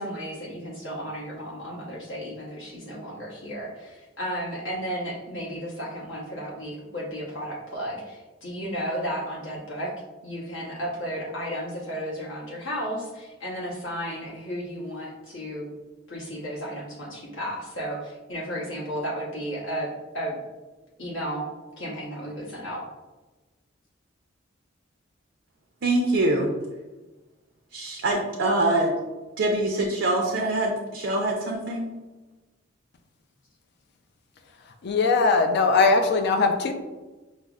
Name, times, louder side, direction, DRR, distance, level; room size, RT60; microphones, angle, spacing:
voice 1, 0.0-9.9 10.2-15.7 16.1-20.4 21.0-21.4 21.8-22.8, equal, 70° left, -4 dB, 1.0 m, -33 dB
voice 2, 25.8-26.5 27.7-29.0 29.4-31.9, right 2 dB, 65° right, 0 dB, 0.5 m, -24 dB
voice 3, 34.8-36.7, left 4 dB, 55° left, 5 dB, 0.4 m, -20 dB
5.3 x 2.0 x 2.3 m, 1.2 s
head